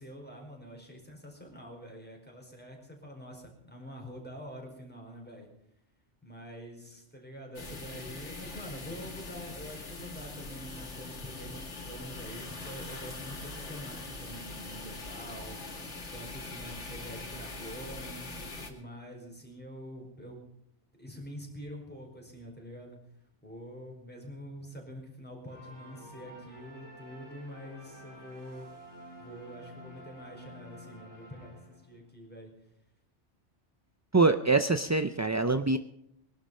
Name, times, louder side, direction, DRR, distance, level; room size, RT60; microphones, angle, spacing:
voice 1, 0.0-5.5 6.2-15.6 16.1-20.4 21.0-23.0 23.4-28.7 29.2-32.5, equal, 10° left, 0 dB, 4.6 m, -46 dB
sound 1, 7.5-18.7, left 3 dB, 80° left, 2.4 m, -42 dB
sound 2, 25.5-32.1, equal, 80° right, 5.1 m, -50 dB
voice 2, 34.1-35.8, right 3 dB, 30° right, 9 dB, 0.3 m, -24 dB
21.0 x 11.5 x 5.5 m, 0.77 s
omnidirectional pair, 1.2 m